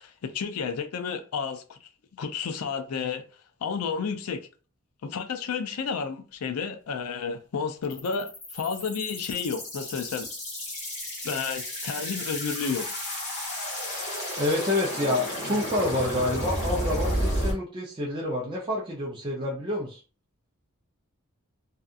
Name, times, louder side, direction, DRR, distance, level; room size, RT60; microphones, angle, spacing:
voice 1, 0.0-1.9 2.2-3.2 3.6-4.4 5.0-10.3 11.2-12.9, left 6 dB, 80° left, 0.4 m, -31 dB
sound 1, 7.8-17.5, equal, 30° left, 1.3 m, -32 dB
voice 2, 14.4-20.0, left 1 dB, 20° right, 0.5 m, -28 dB
2.7 x 2.4 x 2.4 m
head